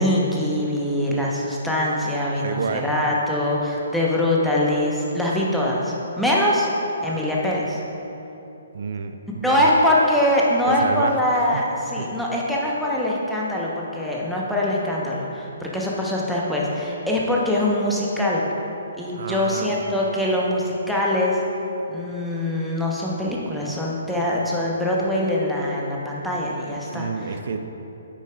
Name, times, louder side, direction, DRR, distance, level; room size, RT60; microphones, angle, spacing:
voice 1, 0.0-6.7 7.0-7.8 9.4-18.4 19.0-21.4 21.9-27.1, left 1 dB, ahead, -5 dB, 1.1 m, -23 dB
voice 2, 2.4-2.9 8.7-9.7 10.7-11.2 11.5-11.7 12.0-12.1 19.1-19.7 26.9-27.6, right 5 dB, 50° right, 7 dB, 0.6 m, -29 dB
9.7 x 8.7 x 2.5 m, 3.0 s
figure-of-eight pair, 130°, 0 cm